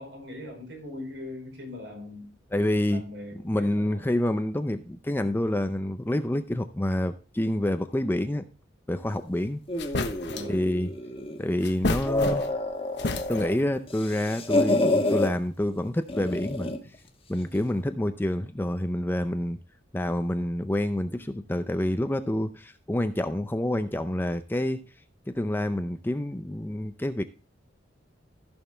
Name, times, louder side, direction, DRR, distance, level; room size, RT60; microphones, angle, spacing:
voice 1, 0.0-2.3 2.9-4.0 10.3-10.7, left 1 dB, 65° right, 4.7 m, -41 dB
voice 2, 2.5-3.1 3.4-8.4 8.9-9.6 10.5-10.9 11.4-12.5 13.3-16.7 17.3-19.6 19.9-24.8 25.3-27.2, left 1 dB, 10° left, 0.5 m, -27 dB
sound 1, 9.3-9.4 9.8-10.6 11.6-12.7 13.0-13.7, left 2 dB, 60° left, 1.1 m, -31 dB
sound 2, 9.7-11.4 11.9-13.5 13.9-15.3 16.1-16.9, left 2 dB, 30° left, 1.4 m, -28 dB
14.5 x 6.4 x 3.4 m
head